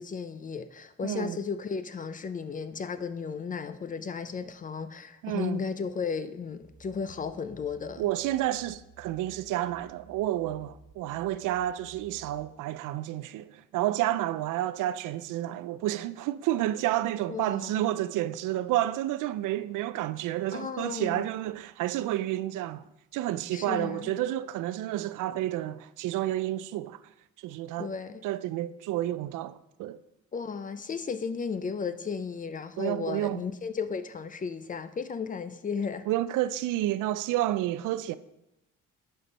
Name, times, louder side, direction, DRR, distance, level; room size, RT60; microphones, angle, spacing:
voice 1, 0.0-8.1 17.3-17.9 20.5-21.3 23.5-24.1 27.8-28.2 30.3-36.1, left 5 dB, 25° left, 0.5 m, -34 dB
voice 2, 1.0-1.4 5.2-5.6 8.0-22.8 23.1-27.0 27.4-27.9 28.2-30.0 32.8-33.4 36.1-38.1, right 14 dB, 80° right, 0.5 m, -30 dB
sound 1, 6.6-12.4, right 3 dB, 25° right, 1.1 m, -56 dB
10.0 x 4.5 x 5.3 m
cardioid pair, 120°, 31 cm